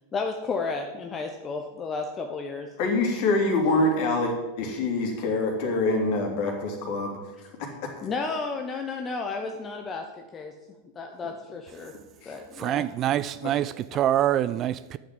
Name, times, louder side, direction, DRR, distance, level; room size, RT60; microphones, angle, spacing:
voice 1, 0.1-2.7 8.0-10.5 10.9-11.9 12.2-12.8 13.5-13.6, left 4 dB, 20° left, 1.1 m, -32 dB
voice 2, 2.8-7.2 7.6-7.9 12.2-12.3 13.4-13.5, left 2 dB, 45° left, 3.0 m, -25 dB
voice 3, 12.6-15.0, right 12 dB, 35° right, 0.4 m, -25 dB
10.5 x 7.7 x 7.8 m
figure-of-eight pair, 90°, 0 cm